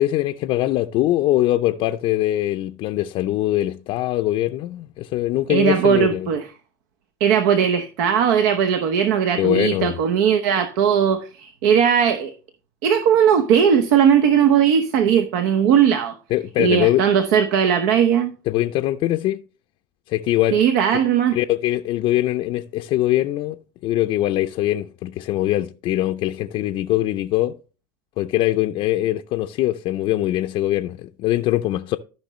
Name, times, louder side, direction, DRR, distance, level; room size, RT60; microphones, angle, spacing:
voice 1, 0.0-6.3 9.4-10.0 16.3-17.1 18.5-19.4 20.1-20.6 21.3-23.6 23.8-27.5 28.2-32.0, left 15 dB, 55° left, 0.5 m, -22 dB
voice 2, 5.5-6.5 7.2-12.3 12.8-16.2 16.6-18.3 20.5-21.4, right 8 dB, 70° right, 0.9 m, -18 dB
13.5 x 5.7 x 3.1 m
hypercardioid pair, 90°, 11 cm